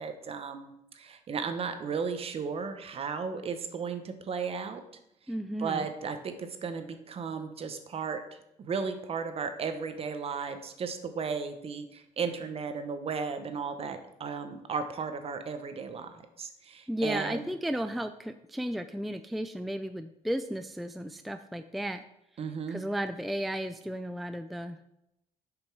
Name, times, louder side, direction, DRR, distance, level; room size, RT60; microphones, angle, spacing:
voice 1, 0.0-4.8 5.6-8.2 8.6-16.1 16.4-17.5 22.4-22.8, right 5 dB, 45° right, 8 dB, 0.9 m, -35 dB
voice 2, 5.3-5.9 16.9-22.0 22.7-24.8, right 1 dB, ahead, 9 dB, 0.4 m, -34 dB
7.1 x 5.3 x 4.6 m, 0.84 s
cardioid pair, 100°, 13 cm